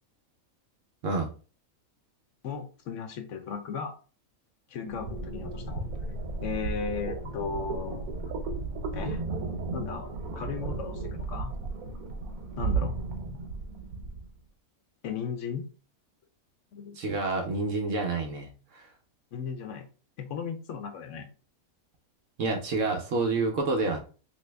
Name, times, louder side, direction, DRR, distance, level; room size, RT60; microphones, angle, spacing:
voice 1, 2.4-3.9 4.7-5.9 6.4-8.2 8.9-9.2 9.7-11.5 12.6-13.1 15.0-15.6 16.7-17.0 19.3-19.9 20.2-21.3, left 6 dB, 65° left, 6 dB, 0.9 m, -36 dB
sound 1, 4.8-14.3, right 3 dB, 90° right, 1.2 m, -34 dB
voice 2, 17.0-18.9 22.4-24.0, right 3 dB, 65° right, 2 dB, 1.0 m, -28 dB
3.0 x 2.7 x 3.2 m, 0.37 s
omnidirectional pair, 1.5 m